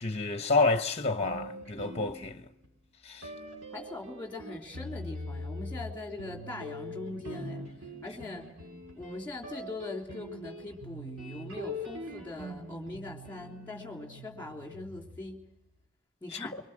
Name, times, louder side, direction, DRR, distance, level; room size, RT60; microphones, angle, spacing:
voice 1, 0.0-2.4 3.0-3.3, left 3 dB, 30° left, 1.1 m, -29 dB
sound 1, 1.2-2.7 3.2-15.4, equal, 80° right, 4.2 m, -43 dB
voice 2, 3.7-7.6 8.0-8.5 8.9-15.4 16.2-16.6, left 2 dB, 10° left, 3.3 m, -41 dB
25.5 x 24.0 x 6.3 m
head